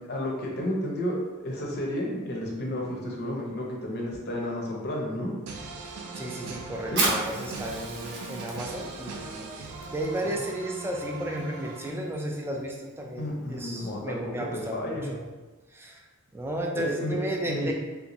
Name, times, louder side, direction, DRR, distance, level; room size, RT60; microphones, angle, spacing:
voice 1, 0.1-5.3 6.9-7.0 10.2-10.4 13.2-14.5 14.7-15.2 16.7-17.2 17.5-17.7, left 1 dB, 50° left, -2 dB, 0.6 m, -32 dB
sound 1, 5.5-12.4, right 3 dB, 85° right, 0.4 m, -40 dB
voice 2, 5.8-15.3 15.7-16.0 16.3-17.7, right 1 dB, 10° right, 0 dB, 0.3 m, -34 dB
Fire, 6.8-14.0, right 2 dB, 55° right, 0.7 m, -36 dB
3.4 x 2.5 x 2.9 m, 1.2 s
head